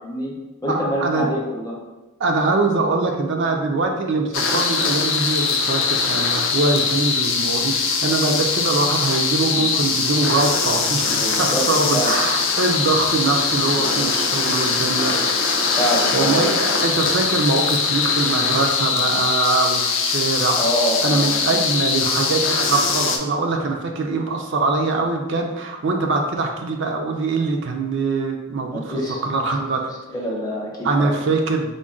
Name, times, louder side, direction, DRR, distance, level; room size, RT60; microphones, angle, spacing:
voice 1, 0.0-0.3 0.6-1.8 6.6-6.7 11.1-11.6 11.9-12.1 13.7-14.1 15.8-16.5 20.6-21.6 28.7-29.2 30.1-31.2, equal, 15° left, -3 dB, 0.7 m, -26 dB
voice 2, 0.7-1.3 2.2-15.2 16.1-20.6 21.0-29.9 30.8-31.7, right 3 dB, 55° right, 2 dB, 0.4 m, -23 dB
sound 1, 4.3-23.2, left 5 dB, 60° left, 0.5 m, -21 dB
3.7 x 2.2 x 3.6 m, 1.1 s
head